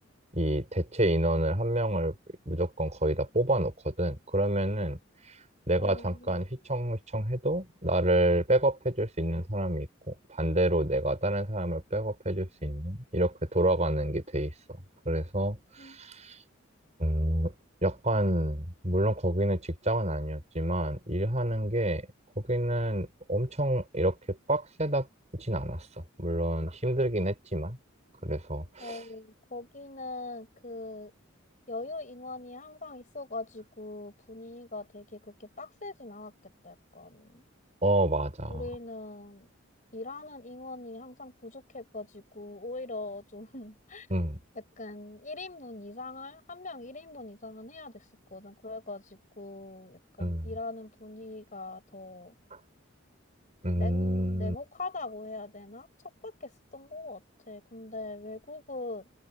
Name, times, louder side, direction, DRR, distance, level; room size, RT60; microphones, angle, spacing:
voice 1, 0.3-2.2 2.5-5.0 5.3-5.4 5.7-16.4 17.0-17.5 17.8-22.1 22.4-25.1 25.3-27.8 28.2-29.0 37.8-38.7 44.1-44.4 50.2-50.5 53.6-54.6, right 1 dB, 35° right, 5.8 m, -28 dB
voice 2, 5.8-6.4 15.8-16.0 28.8-31.1 31.7-36.3 36.6-37.4 38.5-39.5 39.9-44.1 44.8-48.0 48.3-52.3 53.7-55.9 56.2-57.2 57.5-59.1, left 2 dB, 40° left, 5.2 m, -41 dB
head